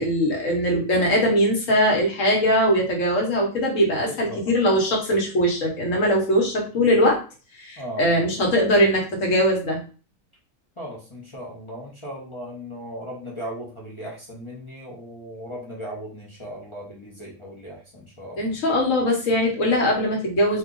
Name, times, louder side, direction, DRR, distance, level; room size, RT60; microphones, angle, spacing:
voice 1, 0.0-7.2 7.6-9.8 18.4-20.6, equal, 65° left, -1 dB, 1.4 m, -21 dB
voice 2, 3.9-4.5 7.8-8.3 10.8-18.5, equal, 25° left, -5 dB, 0.7 m, -37 dB
2.8 x 2.4 x 3.7 m, 0.36 s
omnidirectional pair, 1.5 m